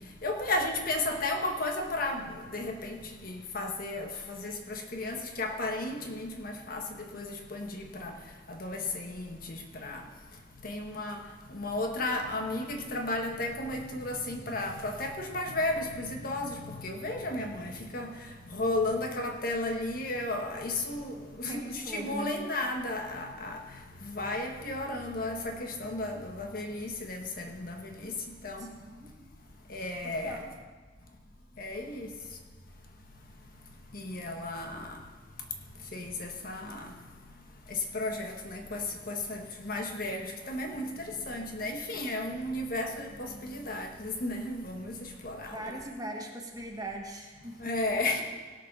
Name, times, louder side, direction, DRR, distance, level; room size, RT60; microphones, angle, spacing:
voice 1, 0.2-3.0 3.2-6.8 7.1-8.1 8.5-10.0 10.6-11.2 11.5-18.1 18.5-23.6 24.0-28.1 28.4-28.7 29.7-30.4 31.6-32.1 33.9-34.9 35.9-36.9 37.9-45.0 45.2-45.6 47.6-48.2, left 2 dB, 50° left, 3 dB, 1.3 m, -34 dB
voice 2, 21.5-22.4 28.6-29.1 30.0-30.4 45.4-47.8, right 1 dB, 20° right, 1 dB, 1.3 m, -40 dB
17.5 x 6.0 x 6.0 m, 1.5 s
head